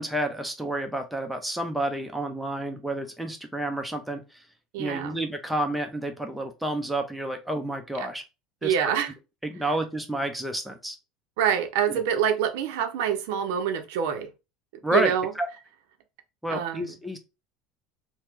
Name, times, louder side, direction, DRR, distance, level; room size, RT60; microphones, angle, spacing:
voice 1, 0.0-4.4 4.8-8.2 8.6-8.7 9.4-11.0 11.9-12.0 14.8-15.5 16.4-17.2, right 1 dB, ahead, 0.6 m, -30 dB
voice 2, 4.7-5.2 8.6-9.1 11.4-14.3 14.9-15.3 16.5-16.9, right 8 dB, 75° right, 0.5 m, -26 dB
2.9 x 2.1 x 3.4 m
supercardioid pair, 115°, 0 cm